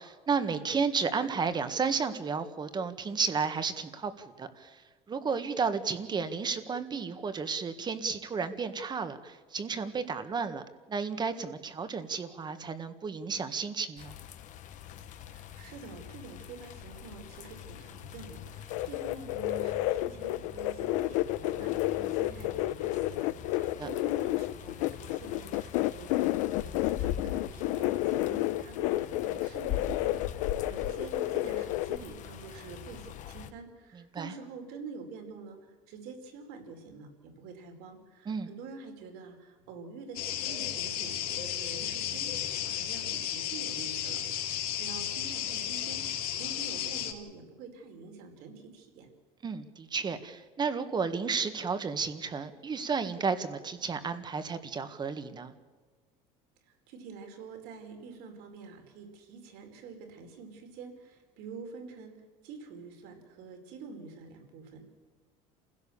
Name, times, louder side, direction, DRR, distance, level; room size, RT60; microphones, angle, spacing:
voice 1, 0.0-4.8 5.1-14.1 22.0-22.1 23.6-23.9 34.1-34.3 38.3-38.5 49.4-55.5, right 5 dB, 25° right, 10 dB, 1.8 m, -32 dB
sound 1, 14.0-33.5, left 9 dB, 50° left, 1.4 m, -43 dB
voice 2, 15.3-35.6 35.9-49.1 56.7-64.8, right 4 dB, 70° right, 5 dB, 4.7 m, -47 dB
sound 2, 18.7-32.0, left 16 dB, 80° left, 0.8 m, -30 dB
sound 3, 40.1-47.1, left 10 dB, 65° left, 3.2 m, -34 dB
28.5 x 16.5 x 7.2 m, 1.4 s
cardioid pair, 130°, 17 cm